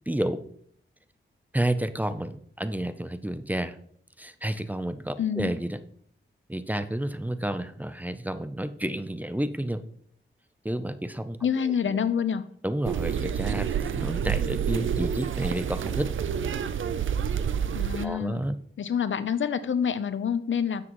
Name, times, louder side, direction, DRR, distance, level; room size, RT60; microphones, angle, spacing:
voice 1, 0.1-0.4 1.5-3.8 4.2-5.8 6.5-9.8 10.6-12.0 12.6-16.1 18.0-18.6, right 1 dB, 10° right, 11 dB, 0.5 m, -30 dB
voice 2, 5.2-5.5 11.4-12.4 17.7-18.4 18.8-20.9, left 7 dB, 70° left, 13 dB, 0.6 m, -27 dB
sound 1, 12.8-18.0, right 8 dB, 75° right, 0.5 m, -28 dB
9.8 x 7.4 x 3.0 m, 0.63 s
wide cardioid pair, 100°, 20 cm